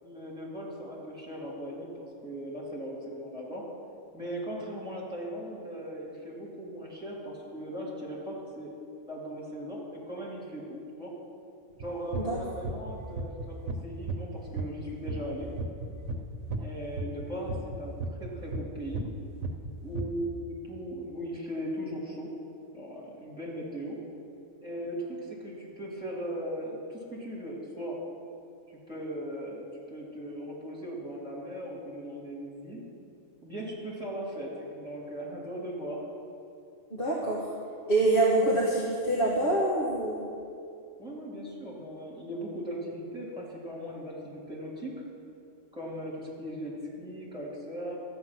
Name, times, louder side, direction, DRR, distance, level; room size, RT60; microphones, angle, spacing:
voice 1, 0.0-3.7 4.1-8.7 9.0-11.1 11.8-15.5 16.6-17.9 18.2-19.1 19.8-22.3 22.7-24.0 24.6-28.0 28.7-32.8 33.4-36.0 41.0-44.9 45.7-48.2, equal, 5° right, -6 dB, 3.0 m, -38 dB
sound 1, 11.8-14.3 14.6-16.6 17.0-19.2 19.4-20.1, right 3 dB, 70° right, 1.3 m, -34 dB
voice 2, 36.9-37.5 37.9-40.2, right 2 dB, 45° left, -5 dB, 1.7 m, -25 dB
13.5 x 8.6 x 6.0 m, 2.5 s
omnidirectional pair, 1.3 m